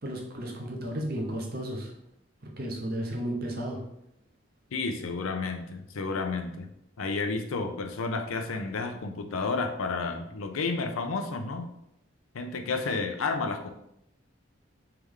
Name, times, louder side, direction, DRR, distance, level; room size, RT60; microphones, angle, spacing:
voice 1, 0.0-1.9 2.4-3.8, right 1 dB, 45° right, 0 dB, 0.7 m, -33 dB
voice 2, 4.7-6.7 7.0-11.7 12.3-13.7, left 4 dB, 90° left, 6 dB, 0.5 m, -31 dB
3.4 x 3.2 x 3.5 m, 0.78 s
head